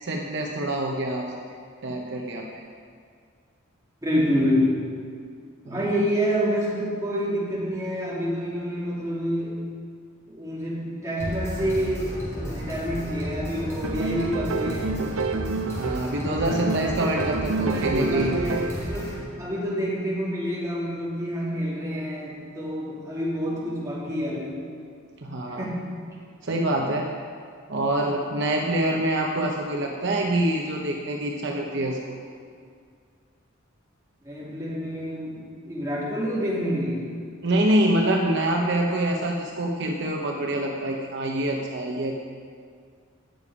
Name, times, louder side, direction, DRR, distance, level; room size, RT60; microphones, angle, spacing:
voice 1, 0.0-1.3 1.8-2.5 5.7-6.0 15.8-18.5 25.2-25.7 26.4-27.1 27.7-32.2 37.4-42.2, right 1 dB, 60° right, 0 dB, 0.9 m, -25 dB
voice 2, 4.0-4.8 5.6-9.7 10.3-15.0 16.2-16.7 17.7-19.1 19.4-24.6 25.5-25.9 34.2-37.1, equal, 15° right, -7 dB, 2.9 m, -28 dB
sound 1, 11.2-19.2, equal, 15° left, 3.4 m, -34 dB
sound 2, 13.8-16.2 16.5-18.9, right 4 dB, 80° right, 0.5 m, -29 dB
17.0 x 6.9 x 5.0 m, 2.2 s
head